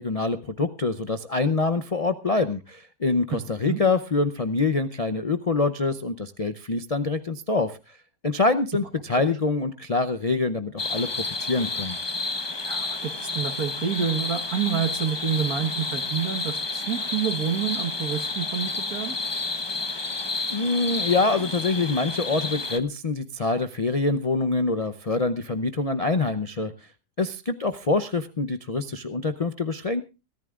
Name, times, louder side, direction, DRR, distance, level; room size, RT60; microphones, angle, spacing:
voice 1, 0.0-7.8 8.2-12.0 20.5-26.7 27.2-30.0, left 3 dB, 65° left, 11 dB, 0.3 m, -25 dB
sound 1, 10.8-22.8, left 3 dB, 25° left, 0.6 m, -30 dB
voice 2, 12.6-19.2, right 7 dB, 60° right, 7 dB, 1.8 m, -28 dB
23.0 x 14.5 x 2.4 m, 0.29 s
omnidirectional pair, 1.8 m